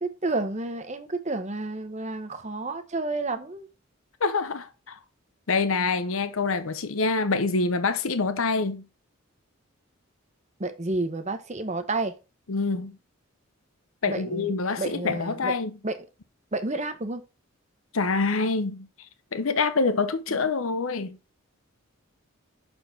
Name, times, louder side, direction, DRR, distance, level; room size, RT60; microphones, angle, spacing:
voice 1, 0.0-3.7 10.6-12.1 14.1-15.5 15.8-16.0 16.5-17.2 20.3-20.4, right 2 dB, 30° right, 1.0 m, -30 dB
voice 2, 4.2-5.0 5.5-8.8 12.5-12.9 14.0-15.7 17.9-18.9 19.3-21.2, left 4 dB, 75° left, 0.8 m, -26 dB
6.7 x 4.4 x 5.7 m
head